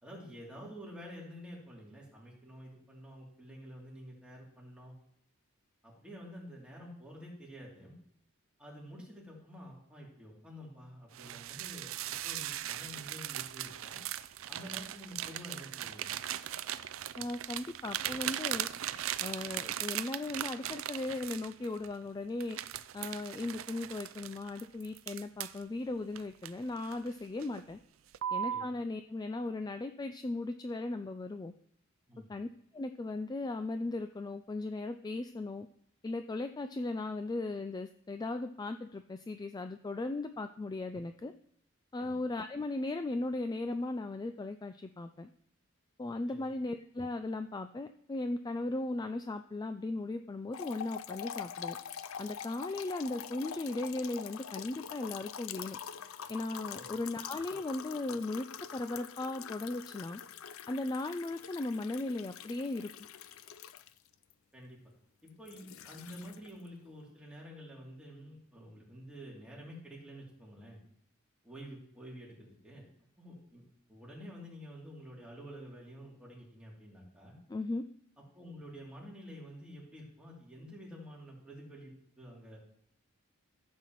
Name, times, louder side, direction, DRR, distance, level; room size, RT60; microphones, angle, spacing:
voice 1, 0.0-4.9 5.8-7.9 8.6-14.0 14.5-16.2 28.5-28.7 32.1-32.3 42.0-42.1 46.3-46.4 56.8-56.9 64.5-64.8 65.2-70.8 71.4-72.8 73.2-73.6 73.9-77.4 78.3-82.6, equal, 5° right, -5 dB, 2.9 m, -49 dB
sound 1, 11.1-21.9 22.4-25.6 26.2-27.1 27.4-27.7 28.1-28.7, right 11 dB, 70° right, 0.4 m, -39 dB
voice 2, 17.2-18.7 19.2-22.6 22.9-27.8 28.3-31.5 32.3-32.5 32.7-35.7 36.0-41.3 41.9-45.3 46.0-51.8 52.2-55.8 56.3-58.5 58.7-60.2 60.7-62.9 77.5-77.8, left 2 dB, 20° left, 8 dB, 0.3 m, -37 dB
sound 2, 50.5-64.3 65.3-66.7, left 8 dB, 80° left, 0.5 m, -45 dB
14.5 x 7.4 x 3.1 m, 0.69 s
head